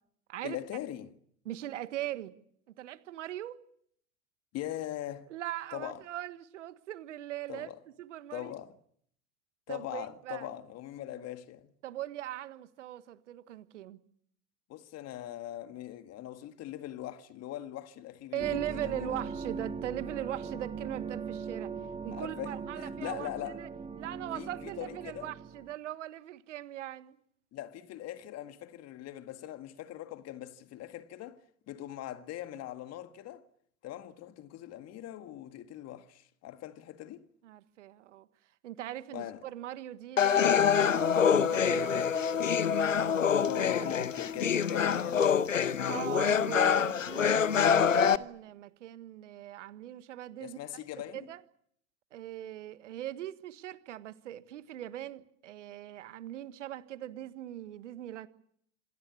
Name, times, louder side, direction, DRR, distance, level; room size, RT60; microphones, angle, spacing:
voice 1, 0.4-1.2 4.5-5.3 5.7-6.0 7.5-7.8 8.3-8.8 9.7-11.7 14.7-19.3 22.1-23.6 24.3-25.3 27.5-31.4 31.7-33.4 33.8-37.3 39.1-39.4 43.5-46.1 50.4-51.3, left 13 dB, 40° left, 1.8 m, -41 dB
voice 2, 1.4-2.3 2.8-3.6 5.3-7.7 8.0-8.5 9.7-10.5 11.1-11.2 11.8-14.0 18.3-21.7 22.0-23.7 24.0-27.2 37.4-38.3 38.6-42.3 43.4-43.9 45.8-50.6 51.1-51.4 52.1-58.3, right 13 dB, 70° right, 1.6 m, -40 dB
sound 1, 18.4-25.7, right 5 dB, 15° right, 2.3 m, -40 dB
sound 2, 40.2-48.2, left 7 dB, 90° left, 0.9 m, -26 dB
27.0 x 19.0 x 8.4 m
figure-of-eight pair, 80°, 38 cm